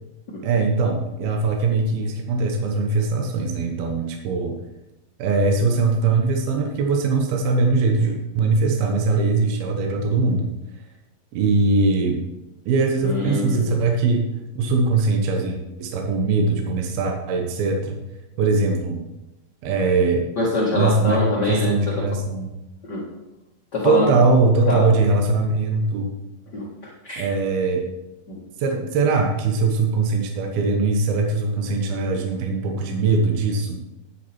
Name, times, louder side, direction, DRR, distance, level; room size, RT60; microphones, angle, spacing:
voice 1, 0.4-4.6 5.2-10.5 11.3-12.2 12.7-14.3 14.6-18.0 18.4-19.0 19.6-20.3 20.7-22.5 23.8-26.1 27.2-27.9 28.6-33.8, right 3 dB, 75° right, 2 dB, 2.8 m, -21 dB
voice 2, 13.0-13.8 20.4-22.1 22.8-23.1 23.7-24.0 24.7-24.9 26.5-27.2 28.3-28.4, left 2 dB, 50° left, -5 dB, 1.2 m, -24 dB
10.5 x 7.5 x 4.3 m, 0.94 s
omnidirectional pair, 4.5 m